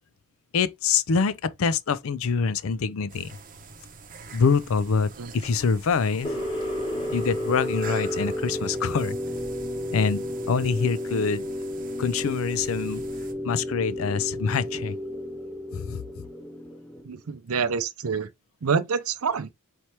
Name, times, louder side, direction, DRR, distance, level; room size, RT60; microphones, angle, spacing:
voice 1, 0.5-3.3 4.3-6.4 7.1-9.2 9.9-11.4 12.0-13.0 13.4-15.0 15.7-16.0, left 5 dB, 65° left, 0.4 m, -25 dB
sound 1, 3.1-13.3, right 4 dB, 40° right, 0.7 m, -46 dB
sound 2, 6.2-17.1, left 1 dB, 25° left, 1.6 m, -32 dB
sound 3, 6.9-17.0, equal, 5° left, 0.5 m, -44 dB
voice 2, 17.0-18.3 18.6-19.5, right 5 dB, 75° right, 0.6 m, -27 dB
4.3 x 3.3 x 2.9 m
head